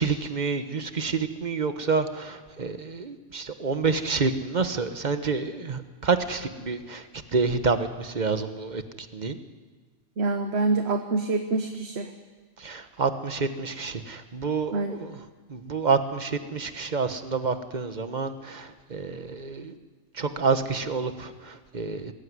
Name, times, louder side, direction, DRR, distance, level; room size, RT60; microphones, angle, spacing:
voice 1, 0.0-9.4 12.6-15.2 15.5-19.7 20.1-22.1, right 4 dB, 40° right, 9 dB, 1.3 m, -28 dB
voice 2, 10.2-12.1 14.7-15.0, right 3 dB, 60° right, 7 dB, 1.3 m, -26 dB
21.0 x 15.5 x 9.6 m, 1.4 s
omnidirectional pair, 1.3 m